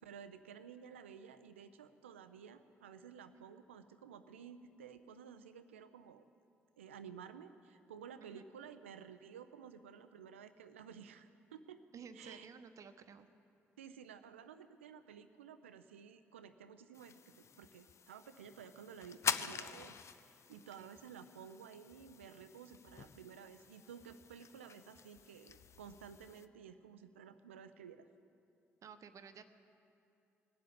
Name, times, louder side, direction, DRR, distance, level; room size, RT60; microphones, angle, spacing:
voice 1, 0.0-6.3 6.8-11.8 12.1-12.5 13.8-17.2 17.6-28.1, right 7 dB, 85° right, 11 dB, 0.5 m, -53 dB
voice 2, 11.9-13.3 20.5-20.9 28.8-29.4, right 6 dB, 55° right, 9 dB, 1.0 m, -54 dB
sound 1, 16.9-26.5, left 7 dB, 45° left, 0.6 m, -46 dB
19.0 x 7.8 x 8.8 m, 2.6 s
hypercardioid pair, 45°, 7 cm